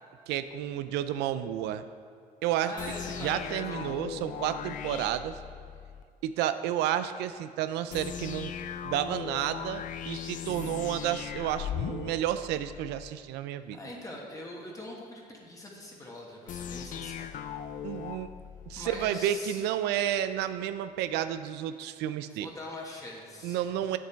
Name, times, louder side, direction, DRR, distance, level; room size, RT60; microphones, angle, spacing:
voice 1, 0.3-1.8 2.4-2.7 3.2-5.4 6.2-8.5 8.8-13.8 17.8-18.3 18.7-22.5 23.4-24.0, right 11 dB, 90° right, 11 dB, 0.4 m, -31 dB
voice 2, 2.6-4.0 13.7-17.4 18.8-19.6 22.4-23.6 23.9-24.0, left 1 dB, 20° left, -2 dB, 1.6 m, -42 dB
sound 1, 2.8-6.1 7.9-13.1 16.5-19.1, left 8 dB, 50° left, 0.4 m, -39 dB
8.2 x 7.5 x 4.5 m, 2.1 s
cardioid pair, 110°, 17 cm